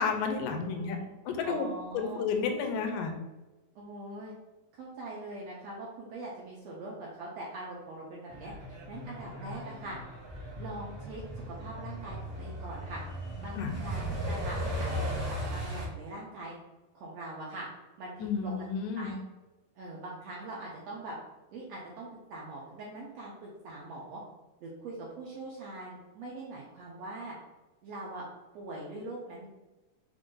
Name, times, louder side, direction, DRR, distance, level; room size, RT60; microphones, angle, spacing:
voice 1, 0.0-1.0 1.3-1.7 1.9-3.1 13.5-13.8 18.2-19.2, left 5 dB, 85° left, 4 dB, 2.2 m, -31 dB
voice 2, 0.8-1.1 1.4-2.2 3.7-4.3 4.7-8.5 8.9-10.0 10.6-13.0 13.4-16.6 16.9-17.7 18.0-18.5 19.0-19.2 19.8-21.2 21.5-24.2 24.6-27.3 27.8-28.3 28.5-29.5, right 2 dB, 75° right, -4 dB, 1.6 m, -42 dB
Truck, 8.3-15.9, equal, 55° right, 0.6 m, -37 dB
5.1 x 2.5 x 3.7 m, 1.1 s
omnidirectional pair, 3.7 m